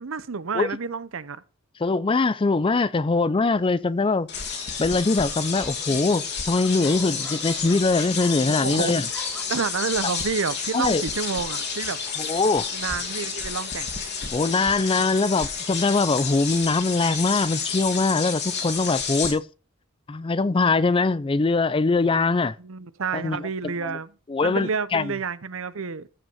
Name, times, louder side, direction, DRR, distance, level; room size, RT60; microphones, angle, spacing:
voice 1, 0.0-1.4 8.5-8.9 9.5-12.0 12.7-13.9 22.1-22.2 22.6-24.1 24.4-26.1, right 5 dB, 75° right, 0.7 m, -29 dB
voice 2, 1.8-4.3 4.8-9.1 10.7-11.0 12.2-12.7 14.3-19.4 20.1-22.5 23.1-24.0 24.3-25.1, left 3 dB, 25° left, 0.4 m, -22 dB
sound 1, 3.5-3.9 4.8-8.7 9.0-9.4, equal, 5° left, 2.4 m, -46 dB
sound 2, 4.3-19.3, left 5 dB, 55° left, 2.4 m, -30 dB
14.5 x 5.4 x 5.6 m
head